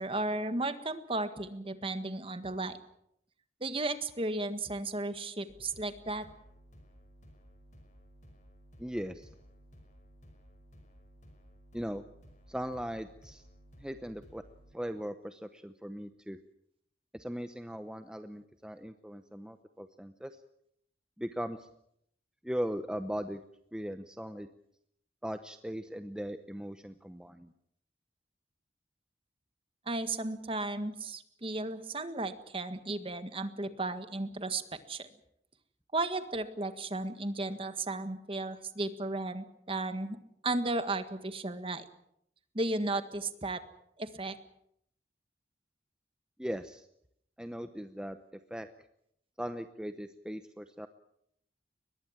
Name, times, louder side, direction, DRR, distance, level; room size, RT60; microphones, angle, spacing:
voice 1, 0.0-2.8 3.6-6.3 29.9-35.1 35.9-40.2 40.4-41.8 42.5-43.6 44.0-44.4, right 2 dB, 30° right, 10 dB, 1.7 m, -34 dB
sound 1, 5.5-14.7, equal, 45° left, 5.2 m, -57 dB
voice 2, 8.8-9.3 11.7-12.0 12.5-13.4 13.8-14.4 14.7-16.4 17.1-20.4 21.2-21.7 22.4-23.4 23.7-24.5 25.2-27.5 46.4-46.9 47.4-48.2 48.5-48.7 49.4-50.9, equal, 5° right, 8 dB, 0.8 m, -39 dB
23.0 x 21.0 x 7.4 m, 0.73 s
head